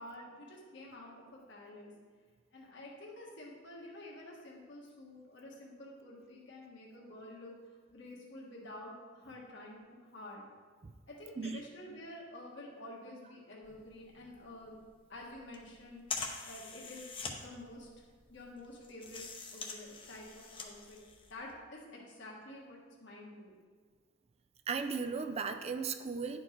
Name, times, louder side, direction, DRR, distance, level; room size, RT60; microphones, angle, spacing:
voice 1, 0.0-1.9 2.5-7.5 7.9-10.4 11.1-14.7 15.1-16.0 16.4-18.0 18.3-19.3 19.5-21.0 21.3-23.5, left 1 dB, 60° left, -3 dB, 1.4 m, -49 dB
sound 1, 13.6-21.5, left 4 dB, 25° left, 0.8 m, -45 dB
voice 2, 24.7-26.4, right 5 dB, 30° right, 8 dB, 0.4 m, -36 dB
10.5 x 4.5 x 4.4 m, 1.5 s
head